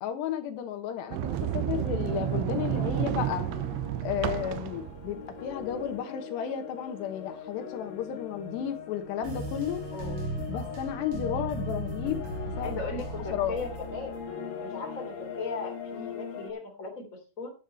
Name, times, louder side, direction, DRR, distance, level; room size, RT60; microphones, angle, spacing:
voice 1, 0.0-3.5 4.0-9.9 10.5-12.2 12.6-12.8 13.3-13.6, left 9 dB, 70° left, 3.2 m, -33 dB
Sliding door, 1.1-6.0, right 13 dB, 80° right, 3.1 m, -31 dB
sound 1, 1.4-16.5, left 6 dB, 55° left, 3.3 m, -41 dB
sound 2, 9.2-14.3, right 2 dB, 60° right, 5.1 m, -37 dB
voice 2, 9.9-10.2 10.5-10.8 12.6-14.2 14.6-17.5, left 4 dB, 20° left, 2.7 m, -37 dB
11.0 x 9.3 x 4.4 m
omnidirectional pair, 5.4 m